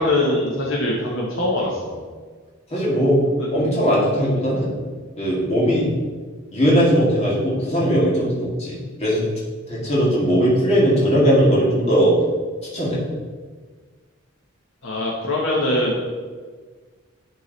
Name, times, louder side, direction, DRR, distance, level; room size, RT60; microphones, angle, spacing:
voice 1, 0.0-2.0 3.4-3.5 14.8-16.0, left 1 dB, 65° left, -4 dB, 1.2 m, -22 dB
voice 2, 2.7-3.2 3.5-4.8 5.2-5.9 6.5-9.2 9.7-12.1 12.7-13.0, equal, 30° left, -6 dB, 2.1 m, -19 dB
11.0 x 3.8 x 4.1 m, 1.5 s
head